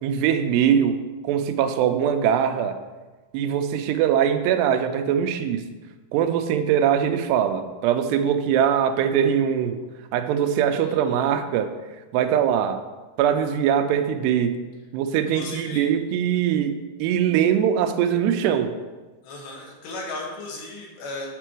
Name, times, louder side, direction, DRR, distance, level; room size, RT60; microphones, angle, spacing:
voice 1, 0.0-2.8 3.3-5.7 6.1-9.8 10.1-11.7 12.1-12.8 13.2-14.6 14.9-18.7, right 9 dB, 90° right, 7 dB, 2.8 m, -22 dB
voice 2, 10.8-11.2 15.3-15.9 19.2-21.3, left 2 dB, 85° left, -2 dB, 4.1 m, -36 dB
9.8 x 4.6 x 7.5 m, 1.2 s
omnidirectional pair, 4.7 m